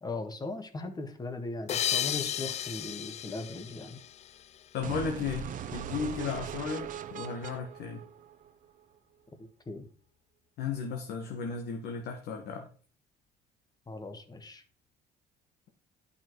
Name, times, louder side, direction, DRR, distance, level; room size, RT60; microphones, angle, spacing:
voice 1, 0.0-4.0 9.4-9.9 13.9-14.6, left 3 dB, 25° left, 7 dB, 1.6 m, -39 dB
sound 1, 1.7-4.8, left 10 dB, 40° left, 0.4 m, -34 dB
voice 2, 4.7-8.0 10.6-12.7, left 6 dB, 75° left, 3 dB, 1.6 m, -35 dB
sound 2, 4.8-8.8, right 8 dB, 50° right, 0.9 m, -39 dB
11.5 x 5.8 x 4.7 m, 0.41 s
cardioid pair, 110°, 17 cm